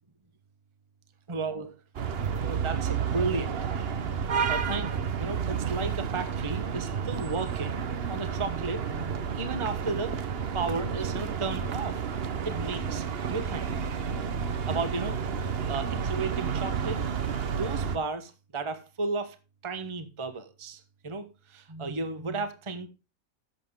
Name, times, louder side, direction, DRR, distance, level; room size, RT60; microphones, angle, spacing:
voice 1, 1.3-1.8 2.2-3.5 4.5-7.8 8.1-10.2 10.5-12.0 12.4-13.7 14.7-17.0 17.6-19.4 19.6-22.9, right 3 dB, 20° right, 1.1 m, -34 dB
sound 1, 1.9-18.0, right 6 dB, 50° right, 1.0 m, -31 dB
12.0 x 7.6 x 3.7 m
omnidirectional pair, 1.5 m